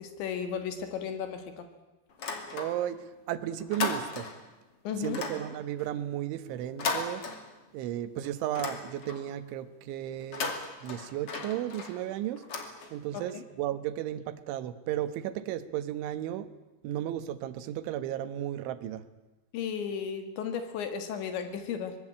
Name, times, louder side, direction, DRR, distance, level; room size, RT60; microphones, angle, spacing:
voice 1, 0.0-1.7 4.9-5.2 13.1-13.4 19.5-22.0, left 7 dB, 75° left, 8 dB, 4.0 m, -34 dB
sound 1, 2.1-3.1 3.4-4.5 5.0-7.9 8.2-9.4 10.2-13.3, left 4 dB, 40° left, 2.7 m, -37 dB
voice 2, 2.5-3.0 3.3-4.3 5.0-7.2 7.7-10.5 10.8-12.4 12.9-16.5 16.8-19.0, right 12 dB, 85° right, 13 dB, 3.6 m, -34 dB
24.5 x 20.5 x 8.7 m, 1.1 s
omnidirectional pair, 5.3 m